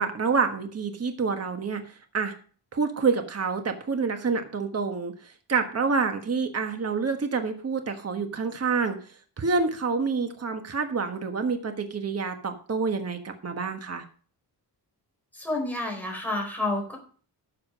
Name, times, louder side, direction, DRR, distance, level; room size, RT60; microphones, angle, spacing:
voice 1, 0.0-2.3 2.7-9.0 9.4-14.0, right 5 dB, 35° right, 6 dB, 1.4 m, -27 dB
voice 2, 15.3-17.0, left 2 dB, 5° left, 0 dB, 4.3 m, -29 dB
12.0 x 7.0 x 5.2 m, 0.42 s
wide cardioid pair, 130°, 42 cm